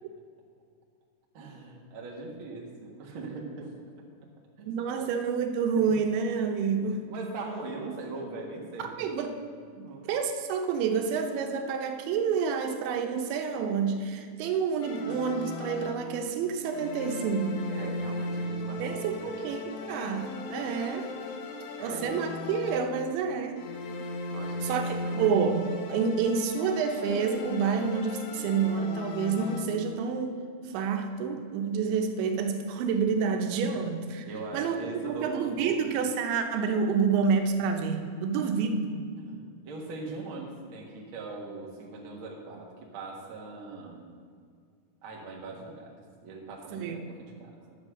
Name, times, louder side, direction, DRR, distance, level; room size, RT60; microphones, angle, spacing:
voice 1, 1.3-3.7 4.6-5.1 7.1-9.2 9.8-10.1 17.7-19.4 21.8-22.1 24.3-25.4 26.0-26.1 34.2-35.9 38.3-38.5 39.2-44.0 45.0-45.9 46.2-47.7, right 3 dB, 60° right, -2 dB, 1.3 m, -41 dB
voice 2, 4.7-7.0 8.8-9.4 10.1-17.6 18.8-21.1 21.8-23.6 24.6-30.4 30.7-34.3 34.5-34.8 35.0-39.0 46.7-47.0, right 6 dB, 85° right, 5 dB, 3.2 m, -28 dB
sound 1, 14.8-16.3 16.7-23.1 23.6-30.0, left 2 dB, 80° left, 2.7 m, -37 dB
10.5 x 8.1 x 6.3 m, 2.1 s
omnidirectional pair, 5.2 m